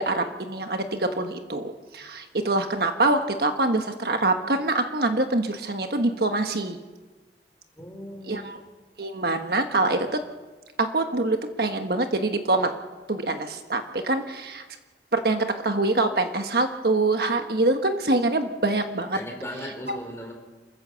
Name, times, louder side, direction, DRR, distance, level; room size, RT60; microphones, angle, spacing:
voice 1, 0.0-6.8 8.3-8.6 9.0-10.2 10.8-12.7 13.1-14.6 15.1-19.2 19.9-20.0, right 2 dB, 60° right, 6 dB, 1.4 m, -25 dB
voice 2, 7.8-8.5 19.1-20.3, equal, 15° left, 1 dB, 4.1 m, -37 dB
27.5 x 15.0 x 7.0 m, 1.2 s
head